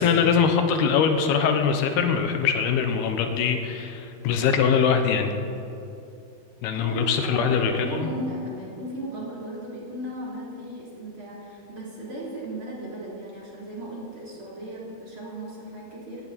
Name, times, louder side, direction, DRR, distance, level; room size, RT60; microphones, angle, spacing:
voice 1, 0.0-5.3 6.6-8.1, left 6 dB, 80° left, 6 dB, 3.0 m, -22 dB
voice 2, 6.7-16.2, right 1 dB, 35° right, -5 dB, 3.7 m, -36 dB
17.5 x 15.0 x 4.2 m, 2.6 s
omnidirectional pair, 4.6 m